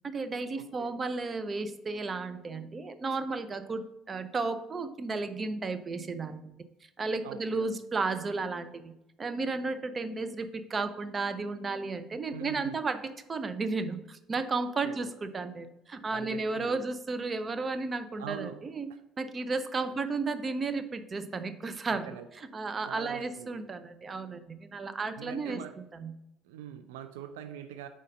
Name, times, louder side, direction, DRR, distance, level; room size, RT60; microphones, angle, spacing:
voice 1, 0.0-6.6 7.0-8.9 9.2-13.0 13.3-18.9 19.2-22.1 22.4-26.1, right 3 dB, 35° right, 11 dB, 0.6 m, -33 dB
voice 2, 0.6-0.9 7.2-7.7 12.3-12.8 14.8-15.1 16.1-16.8 18.2-18.6 19.8-19.9 21.9-22.3 22.9-23.6 25.2-25.7 26.4-27.9, right 9 dB, 80° right, 9 dB, 0.4 m, -43 dB
5.0 x 4.0 x 5.3 m, 0.91 s
hypercardioid pair, 65°, 0 cm